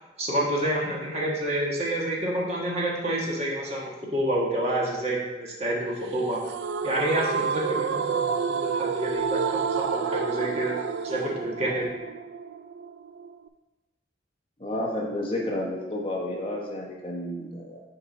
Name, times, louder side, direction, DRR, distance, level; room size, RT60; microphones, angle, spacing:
voice 1, 0.2-6.4 6.8-10.7 11.0-11.8, right 1 dB, 35° right, -4 dB, 1.4 m, -28 dB
sound 1, 6.4-13.5, right 6 dB, 75° right, 0.3 m, -29 dB
voice 2, 14.6-17.8, left 1 dB, 30° left, -2 dB, 1.2 m, -31 dB
6.5 x 4.5 x 4.2 m, 1.1 s
head